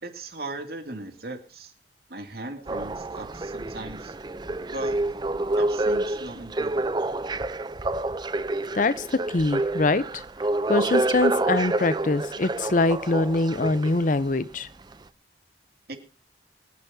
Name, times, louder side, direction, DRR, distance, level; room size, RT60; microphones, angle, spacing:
voice 1, 0.0-1.7 2.1-4.1 4.7-5.0 5.6-6.9 15.9-16.0, right 2 dB, 60° right, 5 dB, 2.4 m, -38 dB
sound 1, 2.7-14.3 14.9-15.0, right 2 dB, 25° right, 0.5 m, -28 dB
voice 2, 8.7-10.2 10.7-14.7, left 2 dB, 45° left, 15 dB, 0.6 m, -24 dB
24.5 x 9.6 x 2.7 m, 0.35 s
head